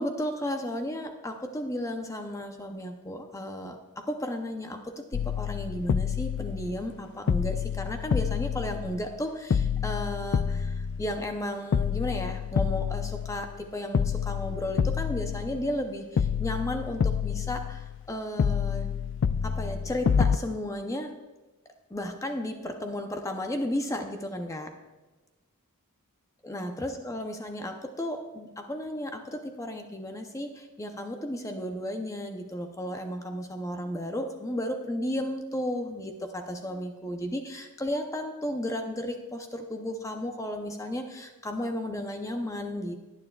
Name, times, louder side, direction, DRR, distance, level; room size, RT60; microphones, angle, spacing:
voice 1, 0.0-18.9 19.4-21.1 21.9-24.7 26.4-42.9, left 1 dB, 15° left, 4 dB, 0.6 m, -34 dB
sound 1, 5.1-7.0 7.3-9.2 9.5-11.4 11.7-13.6 13.9-15.8 16.2-18.1 18.4-20.4, left 7 dB, 55° left, 0.3 m, -28 dB
17.5 x 9.7 x 2.3 m, 1.2 s
head